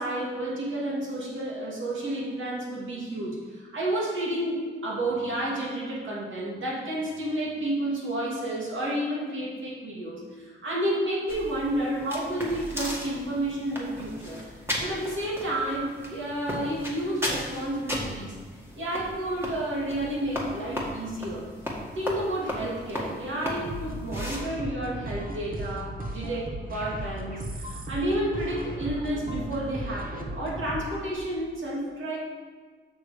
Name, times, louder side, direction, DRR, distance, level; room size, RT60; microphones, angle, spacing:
voice 1, 0.0-14.4 14.8-18.4 18.8-21.4 21.9-32.2, right 1 dB, 80° right, -5 dB, 2.4 m, -31 dB
sound 1, 11.3-24.4, left 1 dB, 10° right, 1.8 m, -36 dB
sound 2, 23.7-31.1, right 1 dB, 45° right, 1.2 m, -36 dB
6.9 x 6.4 x 5.0 m, 1.5 s
cardioid pair, 85°, 20 cm